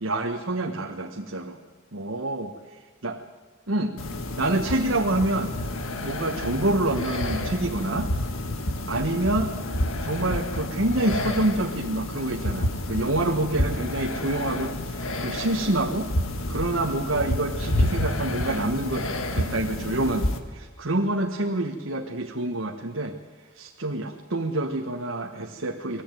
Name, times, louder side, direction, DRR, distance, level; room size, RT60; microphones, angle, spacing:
voice 1, 0.0-1.6 1.9-2.5 3.0-3.2 3.7-3.9 4.4-5.5 6.0-8.1 8.8-9.5 10.0-16.1 16.5-19.1 19.3-23.1 23.5-26.0, right 1 dB, 65° right, 2 dB, 1.4 m, -27 dB
sound 1, 4.0-20.4, left 1 dB, 75° left, 1.8 m, -29 dB
21.0 x 15.5 x 9.2 m, 1.5 s
head